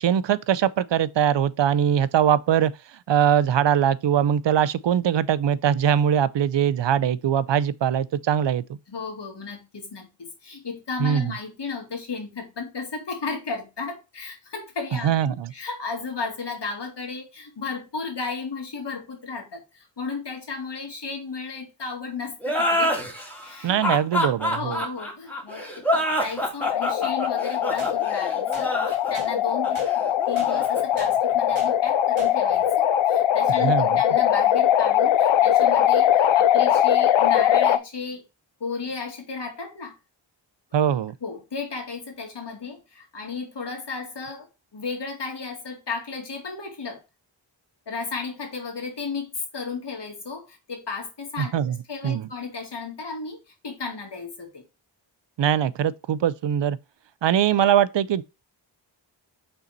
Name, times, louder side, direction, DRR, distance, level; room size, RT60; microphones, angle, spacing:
voice 1, 0.0-2.7 3.1-8.6 11.0-11.3 15.0-15.5 23.6-24.8 33.6-34.0 40.7-41.1 51.4-51.8 52.0-52.3 55.4-56.8 57.2-58.2, right 9 dB, 65° right, 0.6 m, -22 dB
voice 2, 8.9-22.9 23.4-23.8 24.5-38.2 38.6-39.9 41.2-44.5 44.7-47.0 47.9-54.6, left 4 dB, 60° left, 2.4 m, -34 dB
sound 1, 22.4-31.7, equal, 5° left, 2.4 m, -27 dB
sound 2, 26.6-37.8, left 10 dB, 80° left, 0.6 m, -21 dB
sound 3, 27.8-27.9 28.5-28.7 29.1-29.3 29.7-29.9 30.4-30.5 31.0-31.1 31.5-31.7 32.2-32.3, right 4 dB, 85° right, 1.9 m, -40 dB
5.6 x 4.0 x 4.3 m
cardioid pair, 65°, 47 cm